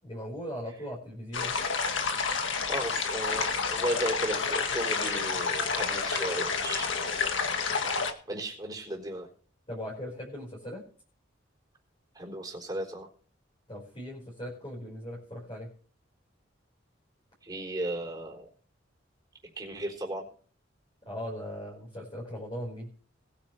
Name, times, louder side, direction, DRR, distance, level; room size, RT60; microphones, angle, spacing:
voice 1, 0.0-1.6 9.7-10.8 13.7-15.7 21.1-22.9, equal, 25° left, -5 dB, 4.7 m, -39 dB
sound 1, 1.3-8.1, left 5 dB, 75° left, 1.7 m, -29 dB
voice 2, 2.7-7.1 8.3-9.3 12.1-13.1 17.4-18.5 19.6-20.3, right 1 dB, 20° right, 0 dB, 3.8 m, -35 dB
20.0 x 9.9 x 3.2 m, 0.43 s
head